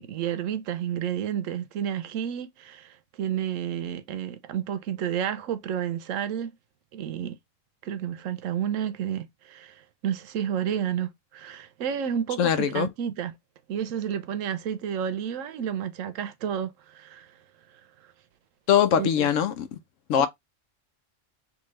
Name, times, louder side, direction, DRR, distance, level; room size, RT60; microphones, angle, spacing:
voice 1, 0.0-2.9 3.2-6.5 6.9-7.4 7.8-9.8 10.0-13.3 13.7-17.3 18.9-19.3 20.2-20.3, right 9 dB, 90° right, 1.0 m, -31 dB
voice 2, 12.4-12.9 18.7-19.8 20.1-20.3, left 9 dB, 85° left, 1.0 m, -22 dB
3.6 x 2.7 x 3.1 m
omnidirectional pair, 1.3 m